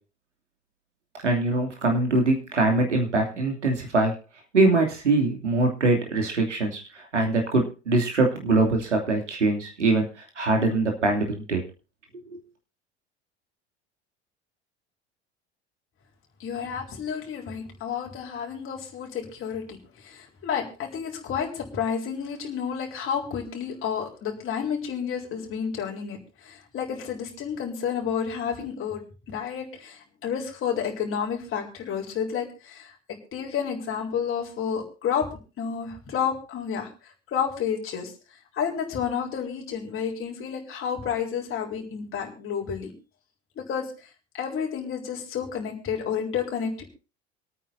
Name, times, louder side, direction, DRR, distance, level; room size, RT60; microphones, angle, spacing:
voice 1, 1.2-4.1 4.5-10.1 10.4-11.6 12.3-12.4, right 2 dB, 85° right, 2 dB, 2.8 m, -23 dB
voice 2, 16.4-29.0 29.3-35.2 35.6-36.9 37.3-38.1 38.5-42.9 43.6-44.1 44.3-46.8, left 7 dB, 35° left, 0 dB, 3.9 m, -30 dB
27.0 x 9.2 x 2.7 m, 0.33 s
figure-of-eight pair, 70°, 35 cm